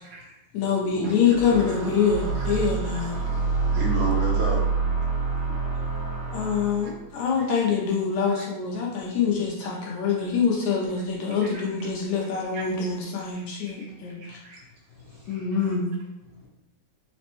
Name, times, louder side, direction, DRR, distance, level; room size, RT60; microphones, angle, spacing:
voice 1, 0.0-0.4 1.0-1.9 3.0-3.1 3.5-4.7 11.5-11.6 12.5-12.6 13.7-13.8 14.2-14.6 15.3-15.7, right 3 dB, 75° right, -3 dB, 2.2 m, -33 dB
voice 2, 0.5-3.2 6.3-14.4 15.3-15.9, left 6 dB, 80° left, -2 dB, 1.8 m, -25 dB
sound 1, 1.3-7.0, right 4 dB, 60° right, 1.5 m, -27 dB
voice 3, 3.5-3.8 5.2-6.4 14.3-14.4 14.9-15.4 16.3-16.5, left 5 dB, 65° left, -10 dB, 1.4 m, -53 dB
5.1 x 2.1 x 2.9 m, 0.95 s
omnidirectional pair, 3.6 m